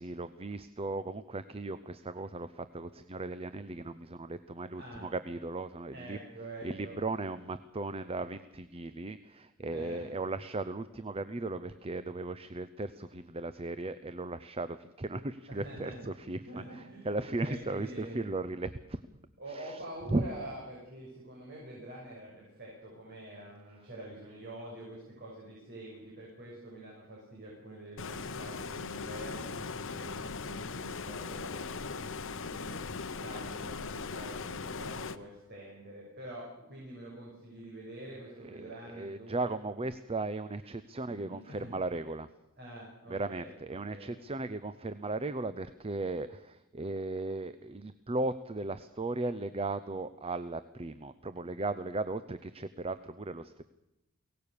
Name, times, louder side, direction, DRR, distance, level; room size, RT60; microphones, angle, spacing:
voice 1, 0.0-6.2 6.6-16.4 16.7-19.0 19.5-19.8 20.1-20.3 38.4-42.3 43.1-53.6, right 2 dB, 25° right, 13 dB, 0.7 m, -36 dB
voice 2, 4.7-5.1 5.9-7.3 9.7-10.1 15.5-16.0 16.4-18.2 19.4-39.5 41.0-41.7 42.6-44.2, right 1 dB, 50° right, -3 dB, 6.6 m, -46 dB
Stream, 28.0-35.2, left 4 dB, 60° left, 1.0 m, -39 dB
23.0 x 18.5 x 6.8 m, 0.92 s
head